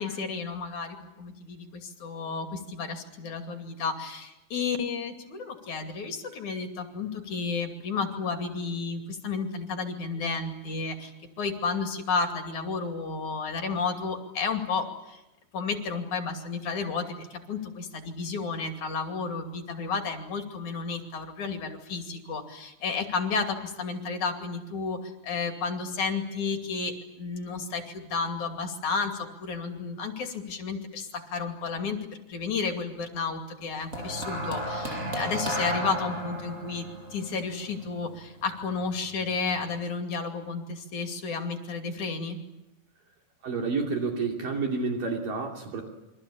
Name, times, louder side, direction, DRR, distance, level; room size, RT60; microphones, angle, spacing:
voice 1, 0.0-15.2 15.5-36.9 37.1-42.4, left 4 dB, 50° left, 4 dB, 3.6 m, -32 dB
sound 1, 33.9-38.4 39.3-39.5, equal, 15° right, 7.4 m, -33 dB
voice 2, 43.4-45.9, right 4 dB, 55° right, 1 dB, 4.3 m, -29 dB
28.5 x 24.5 x 8.6 m, 0.97 s
omnidirectional pair, 5.0 m